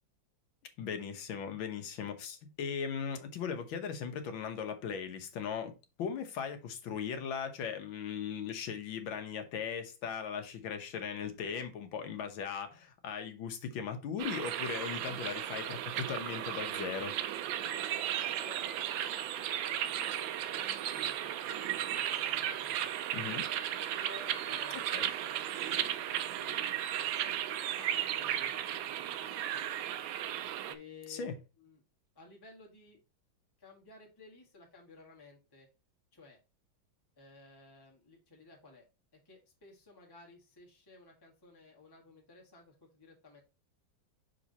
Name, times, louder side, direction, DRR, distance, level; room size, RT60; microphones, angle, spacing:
voice 1, 0.8-5.7 6.0-17.2 23.1-23.5 24.9-25.1 31.1-31.3, left 7 dB, 75° left, 1.7 m, -38 dB
sound 1, 14.2-30.7, right 11 dB, 75° right, 1.3 m, -35 dB
voice 2, 17.6-23.2 23.9-26.6 26.9-29.7 30.7-31.8 32.1-33.0 33.6-35.7 36.1-36.4 37.2-38.9 39.1-43.4, left 3 dB, 10° left, 1.5 m, -56 dB
6.4 x 3.9 x 4.0 m
omnidirectional pair, 2.2 m